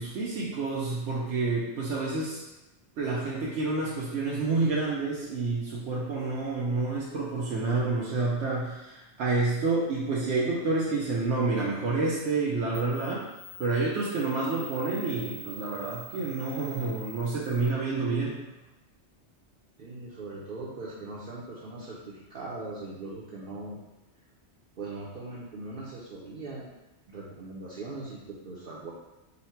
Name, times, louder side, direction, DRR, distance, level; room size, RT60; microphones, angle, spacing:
voice 1, 0.0-2.4 3.0-13.3 13.6-18.4, right 3 dB, 80° right, -6 dB, 1.0 m, -29 dB
sound 1, 12.3-12.4 12.7-17.7, right 1 dB, 30° right, 0.4 m, -46 dB
voice 2, 19.8-23.8 24.8-26.7 27.1-28.9, right 2 dB, 55° right, -5 dB, 0.8 m, -40 dB
4.0 x 2.1 x 4.3 m, 0.98 s
omnidirectional pair, 1.2 m